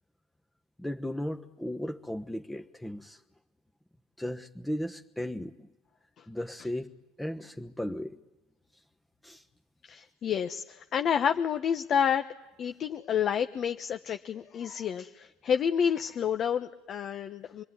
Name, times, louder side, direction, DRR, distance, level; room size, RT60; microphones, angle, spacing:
voice 1, 0.8-3.2 4.2-5.7 6.3-6.9 7.2-8.2 9.2-9.4, left 1 dB, 5° left, 5 dB, 1.2 m, -36 dB
voice 2, 9.8-12.2 12.6-17.6, left 8 dB, 50° left, 7 dB, 1.1 m, -29 dB
27.0 x 22.0 x 9.6 m, 1.0 s
hypercardioid pair, 80°, 0 cm